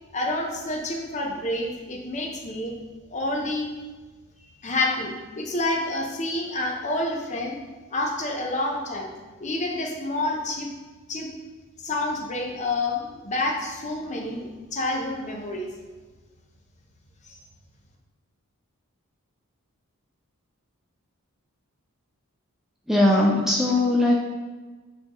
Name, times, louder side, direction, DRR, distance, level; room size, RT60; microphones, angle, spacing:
voice 1, 0.1-2.7 3.1-3.7 4.6-7.6 7.9-9.1 9.4-10.7 11.1-11.3 11.8-15.7, left 2 dB, 30° left, 1 dB, 0.8 m, -28 dB
voice 2, 22.9-24.1, left 1 dB, ahead, -3 dB, 0.5 m, -19 dB
8.8 x 3.8 x 3.0 m, 1.3 s
head